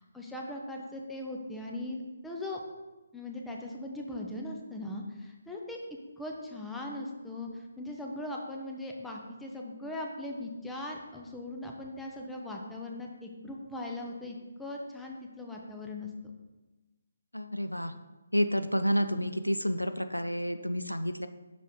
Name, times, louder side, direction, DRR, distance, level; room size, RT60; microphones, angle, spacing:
voice 1, 0.0-2.6 3.1-5.8 6.2-16.1, left 1 dB, 5° left, -1 dB, 0.7 m, -39 dB
voice 2, 17.3-17.9 18.3-21.3, equal, 90° left, 9 dB, 0.4 m, -29 dB
6.0 x 4.6 x 5.1 m, 1.1 s
figure-of-eight pair, 145°, 0 cm